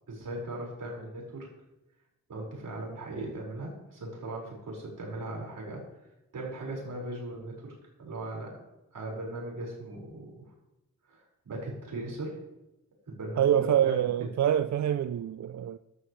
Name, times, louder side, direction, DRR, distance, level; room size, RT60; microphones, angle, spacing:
voice 1, 0.1-1.5 2.3-5.8 6.3-7.7 8.0-8.5 8.9-10.5 11.1-12.4 13.1-13.5 13.8-14.0, right 2 dB, 80° right, 5.2 m, -38 dB
voice 2, 13.4-15.8, right 10 dB, 60° right, 0.4 m, -26 dB
14.0 x 12.5 x 3.2 m
wide cardioid pair, 135°, 32 cm